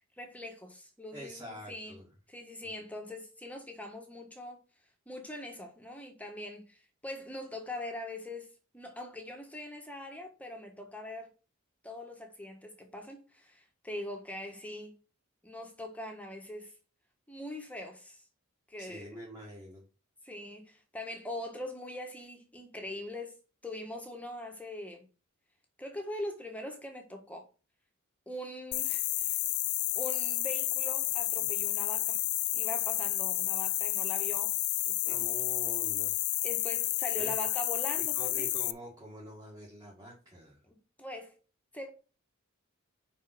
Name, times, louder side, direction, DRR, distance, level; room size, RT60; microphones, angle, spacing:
voice 1, 0.2-2.0 2.3-4.6 5.1-11.3 11.8-15.0 15.4-16.7 17.3-18.2 18.7-19.2 20.2-23.4 23.6-25.0 25.8-27.5 28.3-29.4 29.9-32.2 32.5-34.6 34.8-35.2 36.4-38.5 40.6-41.4 41.7-41.9, left 1 dB, 5° left, 1.4 m, -42 dB
voice 2, 1.1-2.1 18.8-19.8 35.1-36.1 37.2-37.3 38.1-40.6, equal, 20° right, 2.1 m, -46 dB
sound 1, 28.7-38.7, left 18 dB, 80° left, 0.5 m, -31 dB
5.6 x 5.5 x 6.2 m
head